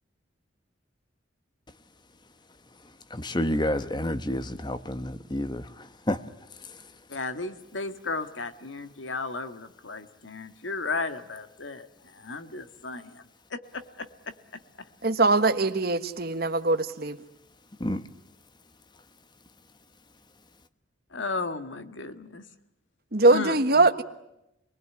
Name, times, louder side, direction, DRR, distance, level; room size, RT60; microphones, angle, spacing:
voice 1, 3.1-6.2 17.8-18.0, left 1 dB, 20° left, 12 dB, 1.1 m, -29 dB
voice 2, 7.1-13.2 13.5-14.3 21.1-22.4 23.3-23.9, left 3 dB, 70° left, 10 dB, 1.8 m, -35 dB
voice 3, 15.0-17.2 23.1-24.0, right 3 dB, 50° right, 9 dB, 1.4 m, -22 dB
27.5 x 20.0 x 9.6 m, 0.86 s
head